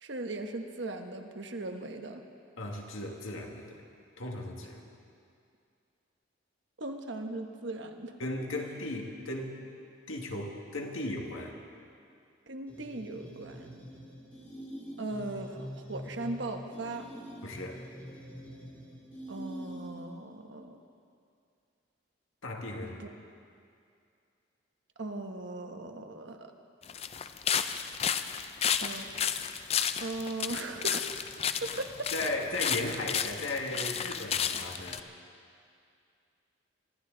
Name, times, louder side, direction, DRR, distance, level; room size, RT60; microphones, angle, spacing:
voice 1, 0.0-2.2 6.8-8.1 12.5-13.7 15.0-17.1 19.3-20.8 23.0-23.1 25.0-26.5 28.8-29.0 30.0-31.0 31.6-32.1, right 2 dB, 65° right, 5 dB, 1.1 m, -38 dB
voice 2, 2.6-3.8 4.2-4.8 8.2-9.5 10.1-11.6 17.4-17.9 22.4-23.0 32.1-35.0, left 2 dB, 90° left, 1 dB, 1.9 m, -36 dB
sound 1, 12.7-20.2, equal, 10° left, 1.8 m, -45 dB
sound 2, 26.8-35.0, left 8 dB, 30° left, 0.4 m, -32 dB
24.0 x 13.5 x 3.9 m, 2.4 s
head